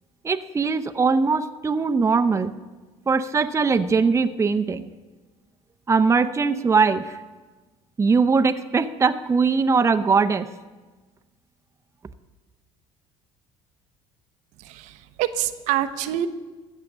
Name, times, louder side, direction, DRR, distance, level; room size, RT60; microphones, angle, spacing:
voice 1, 0.2-2.5 3.1-4.8 5.9-7.1 8.0-10.5, right 5 dB, 20° right, 8 dB, 0.6 m, -21 dB
voice 2, 14.6-16.3, right 12 dB, 70° right, 10 dB, 0.7 m, -26 dB
14.5 x 6.6 x 7.2 m, 1.3 s
hypercardioid pair, 70°, 13 cm